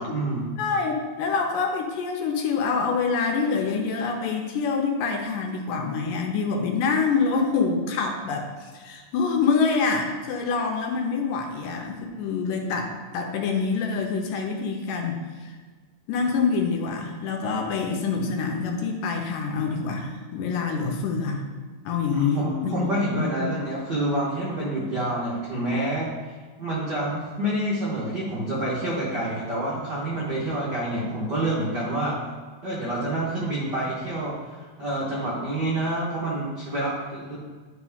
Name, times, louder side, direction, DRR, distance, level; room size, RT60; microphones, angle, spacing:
voice 1, 0.0-0.5 22.1-26.1 26.6-32.2 32.6-37.4, right 1 dB, 85° right, -7 dB, 0.9 m, -28 dB
voice 2, 0.6-15.2 15.4-15.5 16.1-21.4 21.9-23.5, left 5 dB, 80° left, 2 dB, 2.2 m, -26 dB
10.5 x 3.7 x 3.5 m, 1.4 s
omnidirectional pair, 4.0 m